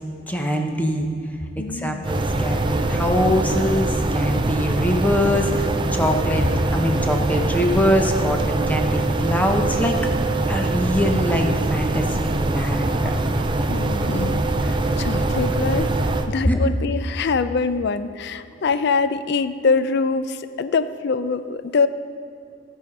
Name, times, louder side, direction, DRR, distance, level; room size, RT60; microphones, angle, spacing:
voice 1, 0.3-1.1 1.6-10.0 10.5-13.1 16.4-16.6, equal, 10° left, 3 dB, 0.8 m, -23 dB
voice 2, 1.6-2.0 13.7-15.9 16.3-21.9, left 4 dB, 55° left, 13 dB, 0.4 m, -24 dB
sound 1, 2.0-16.3, right 2 dB, 25° right, 0.5 m, -23 dB
16.0 x 5.6 x 5.3 m, 2.6 s
head